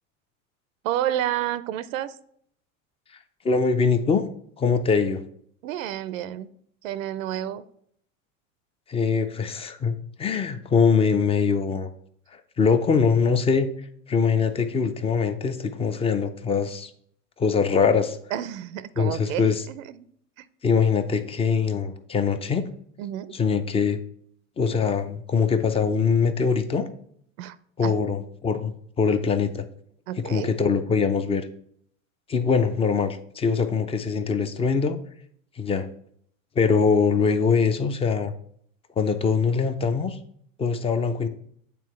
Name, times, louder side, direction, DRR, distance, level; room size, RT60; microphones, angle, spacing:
voice 1, 0.8-2.1 5.6-6.5 6.8-7.6 18.3-20.0 20.4-20.5 23.0-23.3 27.4-27.6 27.8-28.0 30.1-30.5, right 12 dB, 70° right, 16 dB, 0.5 m, -30 dB
voice 2, 3.4-4.2 4.6-5.2 8.9-11.9 12.6-13.7 14.1-16.9 17.4-18.2 19.0-19.6 20.6-22.6 23.3-24.0 24.6-26.9 27.8-29.7 30.2-31.5 32.3-35.0 35.6-35.9 36.6-38.3 39.0-40.2 40.6-41.3, left 5 dB, 15° left, 10 dB, 0.4 m, -23 dB
8.4 x 3.8 x 3.1 m, 0.66 s
hypercardioid pair, 95°, 41 cm